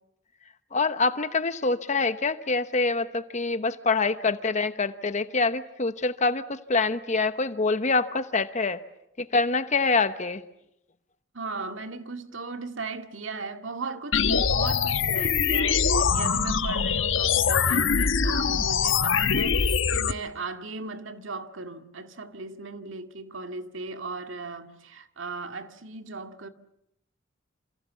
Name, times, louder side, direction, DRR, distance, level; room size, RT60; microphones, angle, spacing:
voice 1, 0.7-8.8 9.2-10.4, left 3 dB, 40° left, 1.0 m, -25 dB
voice 2, 11.3-26.5, right 3 dB, 85° right, 2.1 m, -37 dB
sound 1, 14.1-20.1, left 6 dB, 85° left, 1.2 m, -23 dB
28.5 x 28.0 x 7.3 m
head